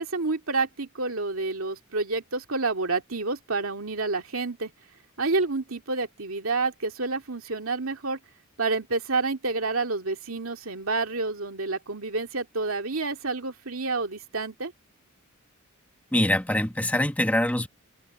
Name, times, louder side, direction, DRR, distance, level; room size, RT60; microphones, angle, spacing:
voice 1, 0.0-4.7 5.2-8.2 8.6-14.7, right 3 dB, 75° right, 2.5 m, -29 dB
voice 2, 16.1-17.7, left 1 dB, 5° left, 1.1 m, -24 dB
head